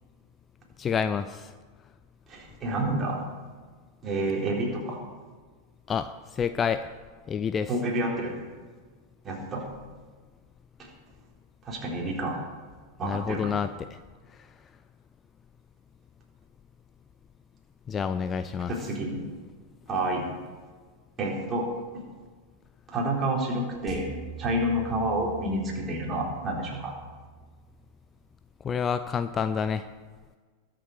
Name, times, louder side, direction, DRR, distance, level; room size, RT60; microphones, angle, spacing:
voice 1, 0.8-1.5 5.9-6.9 7.3-7.7 13.0-14.0 17.9-18.7 28.6-29.9, left 7 dB, 20° left, 11 dB, 0.5 m, -28 dB
voice 2, 2.3-3.2 4.0-5.0 7.7-8.3 9.2-9.6 10.8-10.9 11.6-12.4 13.0-13.6 18.7-19.2 19.9-20.3 21.2-21.7 22.9-24.1 24.4-26.9, right 1 dB, 25° right, -2 dB, 3.8 m, -29 dB
sound 1, 23.9-28.2, right 5 dB, ahead, 3.2 m, -44 dB
21.5 x 7.7 x 4.8 m, 1.5 s
figure-of-eight pair, 90°, 0 cm